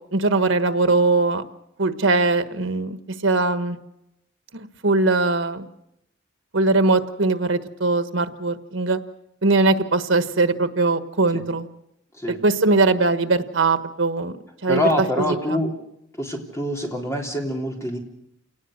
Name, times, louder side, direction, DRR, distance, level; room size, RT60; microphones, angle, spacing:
voice 1, 0.1-1.4 1.8-3.0 3.2-3.8 4.5-5.6 6.5-9.0 9.4-11.7 12.3-14.3 14.6-14.8 15.2-15.3, right 3 dB, 85° right, 10 dB, 1.4 m, -20 dB
voice 2, 14.7-15.7 16.2-18.0, left 1 dB, 15° left, 0 dB, 3.5 m, -25 dB
28.5 x 18.5 x 6.6 m, 0.82 s
head